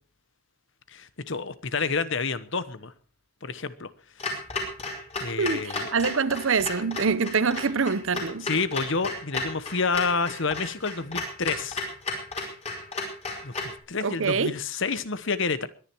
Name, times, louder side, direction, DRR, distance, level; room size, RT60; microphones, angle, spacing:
voice 1, 0.9-2.9 3.4-3.9 4.2-4.3 5.2-5.9 8.4-11.9 13.4-15.7, left 4 dB, 55° left, 1.1 m, -29 dB
Clock, 4.2-13.8, left 2 dB, 30° left, 4.8 m, -34 dB
voice 2, 5.4-8.5 14.0-14.5, right 5 dB, 60° right, 0.8 m, -25 dB
22.0 x 10.5 x 4.6 m
head